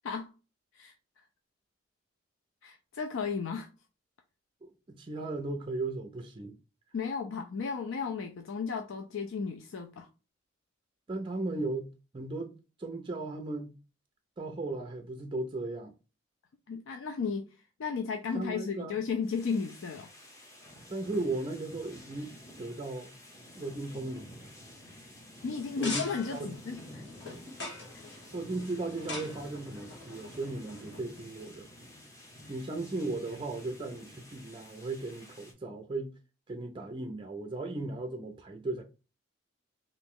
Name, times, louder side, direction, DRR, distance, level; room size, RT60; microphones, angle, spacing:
voice 1, 2.6-3.7 6.9-10.1 16.7-17.5 17.8-20.1 25.4-27.0, left 5 dB, 75° left, 0.4 m, -34 dB
voice 2, 4.6-6.6 11.1-11.9 12.1-13.7 14.4-15.9 18.3-19.0 20.9-23.1 23.6-24.5 25.8-26.0 26.3-26.5 28.3-31.7 32.5-36.1 36.5-38.8, right 2 dB, 25° right, 0.4 m, -36 dB
sound 1, 19.2-35.5, left 1 dB, 15° left, 0.7 m, -51 dB
sound 2, 25.5-31.0, left 2 dB, 60° left, 1.2 m, -43 dB
2.9 x 2.5 x 3.5 m
head